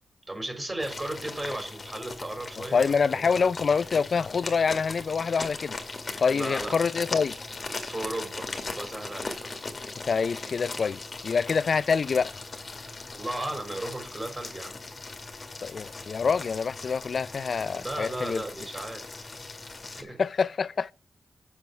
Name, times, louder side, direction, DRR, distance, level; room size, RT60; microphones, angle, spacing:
voice 1, 0.3-2.8 3.1-3.2 6.3-6.7 7.8-9.6 13.1-14.8 17.7-19.3 19.9-20.2, right 1 dB, 25° right, 4.1 m, -35 dB
sound 1, 0.8-20.0, left 3 dB, 40° left, 2.1 m, -39 dB
voice 2, 2.7-5.8 6.2-7.4 10.1-12.3 15.6-18.4 20.2-20.9, left 5 dB, 60° left, 0.4 m, -26 dB
7.6 x 7.1 x 5.8 m
cardioid pair, 80°, 0 cm